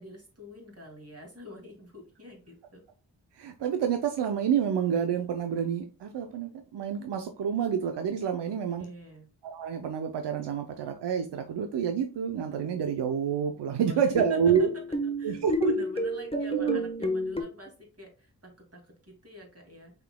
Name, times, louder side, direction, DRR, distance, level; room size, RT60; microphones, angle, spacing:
voice 1, 0.0-2.8 8.5-9.3 13.8-14.7 15.0-17.7 18.0-19.9, equal, 35° right, 1 dB, 2.4 m, -47 dB
voice 2, 3.4-8.9 9.4-14.7 15.2-15.7 16.3-16.8, right 8 dB, 80° right, 6 dB, 0.6 m, -28 dB
sound 1, 13.8-17.4, left 1 dB, 15° left, 1.0 m, -31 dB
5.6 x 3.8 x 2.2 m, 0.35 s
cardioid pair, 40°, 41 cm